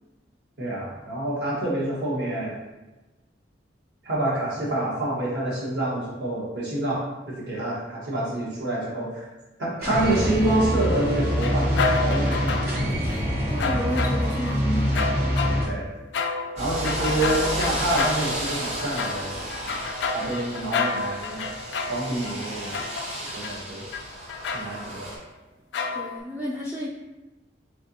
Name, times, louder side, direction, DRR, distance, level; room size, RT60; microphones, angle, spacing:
voice 1, 0.6-2.6 4.0-9.3 9.6-12.5 15.6-15.9 16.6-19.7 20.1-21.5 21.9-22.8 23.3-23.8 24.5-25.1, right 1 dB, 75° right, -5 dB, 1.2 m, -27 dB
sound 1, 9.8-15.6, equal, 55° right, 1.1 m, -25 dB
sound 2, 10.9-12.9 13.6-14.6 14.9-23.6 23.9-24.9 25.7-26.2, left 4 dB, 90° left, 0.4 m, -30 dB
voice 2, 13.5-14.9 25.9-26.9, equal, 10° right, -6 dB, 0.3 m, -31 dB
sound 3, 16.6-25.2, equal, 40° right, 0.8 m, -33 dB
3.7 x 3.3 x 2.7 m, 1.1 s
head